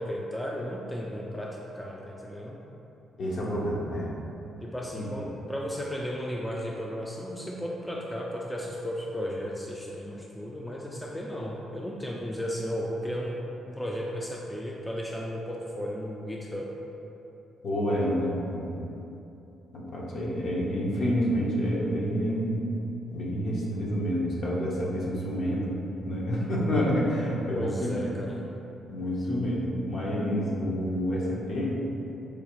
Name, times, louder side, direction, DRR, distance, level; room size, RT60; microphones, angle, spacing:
voice 1, 0.0-2.6 4.6-13.4 13.7-16.7 27.5-28.4, equal, 10° left, -2 dB, 0.3 m, -34 dB
voice 2, 3.2-4.1 4.9-5.0 17.6-18.6 19.7-22.6 23.1-27.9 28.9-31.8, equal, 55° left, -4 dB, 0.8 m, -28 dB
4.7 x 2.4 x 3.0 m, 2.9 s
cardioid pair, 90°, 0 cm